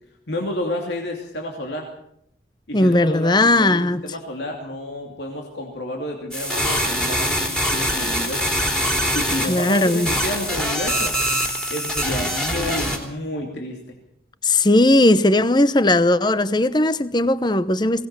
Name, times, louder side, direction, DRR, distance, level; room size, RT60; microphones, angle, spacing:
voice 1, 0.3-1.9 2.7-8.6 9.1-11.2 11.7-14.0, left 1 dB, 70° left, 2.8 m, -30 dB
voice 2, 2.7-4.0 9.4-10.1 14.4-18.1, left 2 dB, 25° left, 0.8 m, -17 dB
sound 1, 6.3-13.0, equal, 5° left, 3.3 m, -23 dB
22.5 x 18.5 x 6.9 m
head